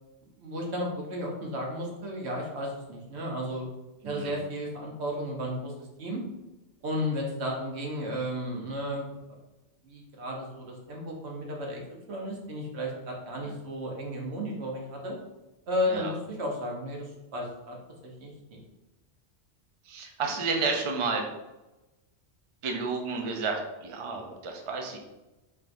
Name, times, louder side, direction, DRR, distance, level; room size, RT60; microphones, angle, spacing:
voice 1, 0.4-3.7 4.0-6.2 6.8-9.1 9.8-15.2 15.7-17.8 18.0-18.6, equal, 80° right, -1 dB, 1.2 m, -33 dB
voice 2, 4.0-4.3 15.9-16.1 19.9-21.3 22.6-25.0, right 4 dB, 40° right, 2 dB, 0.5 m, -31 dB
4.4 x 3.6 x 2.6 m, 1.0 s
omnidirectional pair, 1.1 m